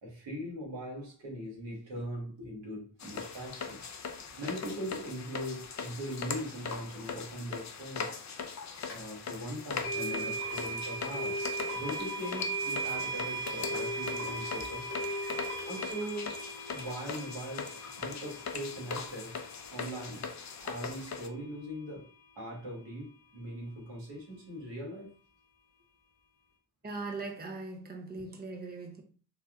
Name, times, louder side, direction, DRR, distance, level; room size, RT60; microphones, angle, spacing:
voice 1, 0.0-3.9 4.4-8.2 8.8-14.9 15.6-16.4 16.7-19.3 19.7-22.1 22.4-25.1, equal, 80° right, 1.3 m, -40 dB
sound 1, 3.0-21.3, left 5 dB, 40° left, 0.5 m, -41 dB
sound 2, 8.9-9.0 9.8-20.8, right 2 dB, 65° left, 1.0 m, -37 dB
voice 2, 26.8-29.0, right 3 dB, 20° right, 0.7 m, -40 dB
3.3 x 2.4 x 2.4 m
supercardioid pair, 40°, 42 cm